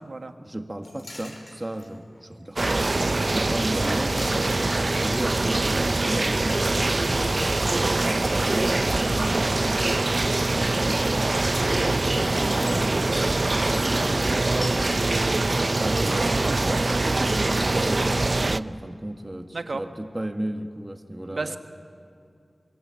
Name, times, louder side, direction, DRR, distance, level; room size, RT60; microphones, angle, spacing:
voice 1, 0.4-7.5 7.8-9.9 10.5-11.3 12.0-14.8 15.7-21.6, right 1 dB, 20° right, 6 dB, 1.6 m, -34 dB
sound 1, 0.8-9.1 9.5-10.3 10.6-17.0 17.2-17.9, left 1 dB, 60° left, 4.7 m, -45 dB
sound 2, 2.6-18.6, right 2 dB, 45° right, 0.5 m, -23 dB
sound 3, 8.9-14.4, equal, 20° left, 3.5 m, -41 dB
voice 2, 16.1-16.7 19.5-19.8 21.3-21.6, right 3 dB, 75° right, 7 dB, 1.4 m, -32 dB
25.0 x 23.5 x 8.3 m, 2.4 s
wide cardioid pair, 80°, 0 cm